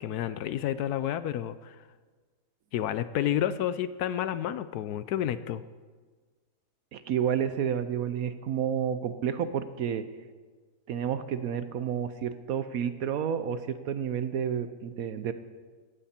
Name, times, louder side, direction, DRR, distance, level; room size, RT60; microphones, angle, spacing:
voice 1, 0.0-1.8 2.7-5.6, left 11 dB, 75° left, 14 dB, 1.0 m, -30 dB
voice 2, 6.9-10.0 10.9-15.3, right 8 dB, 65° right, 12 dB, 1.0 m, -30 dB
17.0 x 14.0 x 4.3 m, 1.4 s
omnidirectional pair, 1.8 m